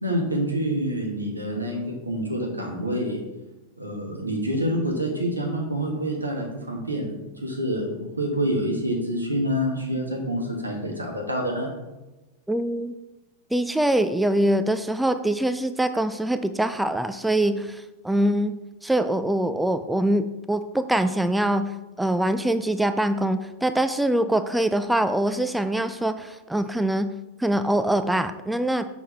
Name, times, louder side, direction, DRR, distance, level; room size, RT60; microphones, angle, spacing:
voice 1, 0.0-3.2 3.8-7.1 7.4-11.7, equal, 85° right, 0 dB, 1.4 m, -27 dB
voice 2, 12.5-12.9 13.5-21.7 22.0-27.1 27.4-28.9, right 1 dB, 5° right, 10 dB, 0.3 m, -24 dB
6.1 x 6.0 x 3.3 m, 1.1 s
figure-of-eight pair, 90°, 0 cm